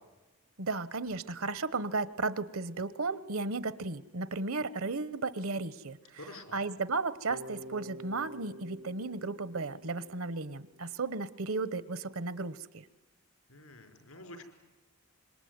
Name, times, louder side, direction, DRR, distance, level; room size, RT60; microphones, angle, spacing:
voice 1, 0.6-6.2 6.5-12.8, right 3 dB, 70° right, 15 dB, 1.0 m, -34 dB
voice 2, 6.2-6.6 13.5-14.4, left 2 dB, 80° left, 6 dB, 4.9 m, -48 dB
Bass guitar, 7.3-11.3, equal, 90° right, 3.7 m, -48 dB
26.5 x 22.0 x 9.6 m, 1.1 s
head